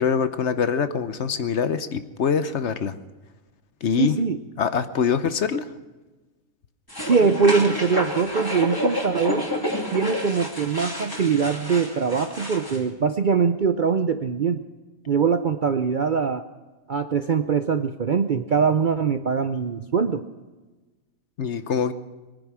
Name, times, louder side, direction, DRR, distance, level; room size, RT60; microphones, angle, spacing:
voice 1, 0.0-2.9 3.8-4.2 4.6-5.7 21.4-21.9, left 6 dB, 55° left, 11 dB, 1.0 m, -24 dB
voice 2, 4.0-4.4 7.0-9.5 9.9-14.6 15.1-16.4 16.9-20.2, right 5 dB, 50° right, 9 dB, 0.6 m, -22 dB
sound 1, 6.9-12.8, left 1 dB, 15° left, 2.8 m, -29 dB
22.5 x 10.0 x 6.1 m, 1.2 s
omnidirectional pair, 1.5 m